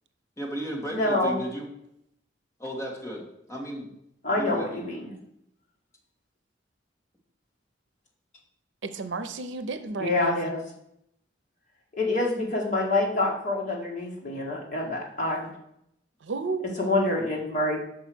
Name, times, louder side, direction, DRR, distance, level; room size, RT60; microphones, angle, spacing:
voice 1, 0.4-1.7 2.6-3.9 4.3-4.8, equal, 15° left, -1 dB, 1.6 m, -34 dB
voice 2, 0.9-1.4 4.2-5.1 10.0-10.6 11.9-15.5 16.8-17.8, left 2 dB, 45° left, -2 dB, 1.8 m, -26 dB
voice 3, 8.8-10.5 16.2-16.7, right 4 dB, 85° right, 10 dB, 0.6 m, -33 dB
6.1 x 4.7 x 6.1 m, 0.77 s
head